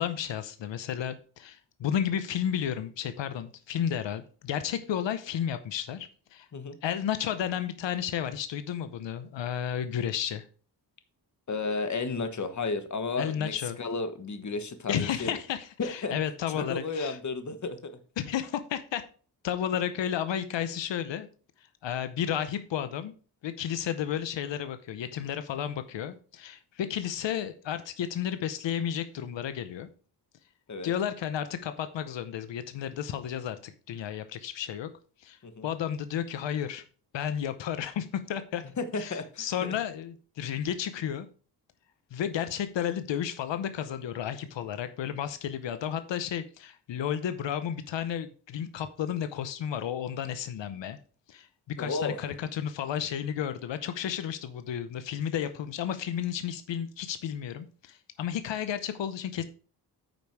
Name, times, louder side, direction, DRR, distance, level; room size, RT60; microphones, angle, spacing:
voice 1, 0.0-6.5 6.8-10.5 13.2-13.8 14.9-17.2 18.2-19.0 19.4-21.3 21.6-23.1 23.4-29.9 30.8-34.9 35.2-36.8 37.1-38.7 39.0-41.3 42.1-51.0 51.3-51.5 51.8-59.4, left 9 dB, 90° left, 11 dB, 0.8 m, -32 dB
voice 2, 11.5-15.3 15.8-16.1 16.6-18.0 30.7-30.9 35.4-35.6 38.8-39.4 51.8-52.2, left 3 dB, 40° left, 9 dB, 1.3 m, -33 dB
9.1 x 5.3 x 4.7 m, 0.41 s
cardioid pair, 90°, 43 cm